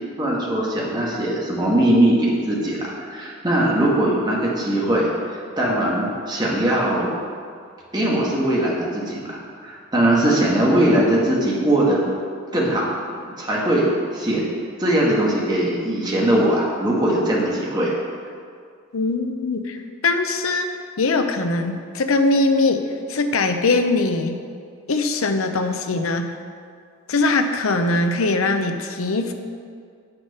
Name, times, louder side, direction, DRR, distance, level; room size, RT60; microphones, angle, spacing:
voice 1, 0.2-7.2 7.9-12.1 12.5-12.9 13.2-14.4 14.8-17.9, right 1 dB, 20° right, -4 dB, 1.5 m, -20 dB
voice 2, 18.9-19.8 20.0-22.8 23.1-24.4 24.9-26.3 27.1-29.3, left 3 dB, 70° left, 7 dB, 0.6 m, -21 dB
7.3 x 6.8 x 5.5 m, 2.2 s
head